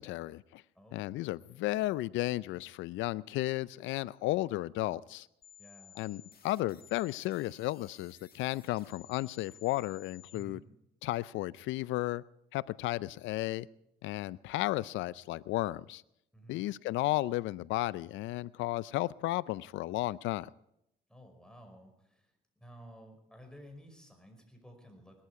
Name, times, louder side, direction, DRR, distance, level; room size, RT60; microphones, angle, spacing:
voice 1, 0.0-0.6 0.9-5.3 6.0-10.6 11.0-12.2 12.5-13.7 14.0-16.0 16.5-20.5, left 17 dB, 80° left, 20 dB, 0.5 m, -34 dB
voice 2, 0.7-1.1 5.6-6.1 10.3-10.6 16.3-16.6 21.1-25.2, equal, 5° left, 4 dB, 5.1 m, -54 dB
sound 1, 5.4-10.4, left 8 dB, 50° left, 1.9 m, -57 dB
20.0 x 13.0 x 4.8 m, 0.79 s
supercardioid pair, 65°, 19 cm